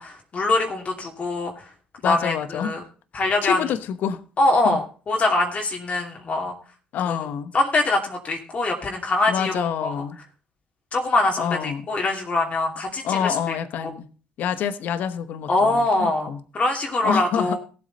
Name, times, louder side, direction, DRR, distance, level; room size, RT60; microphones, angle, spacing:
voice 1, 0.0-1.7 2.0-2.8 3.1-3.6 4.4-6.5 7.1-7.2 7.5-10.0 10.9-13.9 15.5-17.6, left 2 dB, 40° left, 2.8 m, -23 dB
voice 2, 2.0-2.8 3.4-4.2 4.6-4.8 6.9-7.5 9.3-10.2 11.4-11.9 13.0-14.1 14.4-16.4 17.0-17.6, left 8 dB, 65° left, 1.1 m, -27 dB
16.5 x 8.0 x 4.1 m
hypercardioid pair, 60°, 3 cm